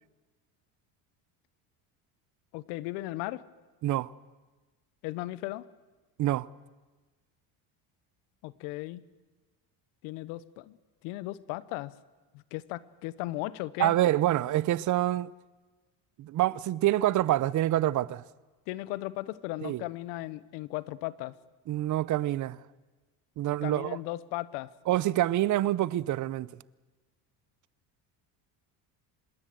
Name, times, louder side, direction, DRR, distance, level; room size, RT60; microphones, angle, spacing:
voice 1, 2.5-3.4 5.0-5.7 8.4-9.0 10.0-10.8 11.0-11.9 12.3-13.9 18.7-21.3 23.6-24.7, left 18 dB, 90° left, 1.1 m, -36 dB
voice 2, 13.8-15.3 16.2-18.2 19.6-19.8 21.7-22.6 23.4-24.0 24.9-26.5, right 14 dB, 50° right, 0.7 m, -26 dB
26.0 x 21.0 x 7.9 m
cardioid pair, 120°, 40 cm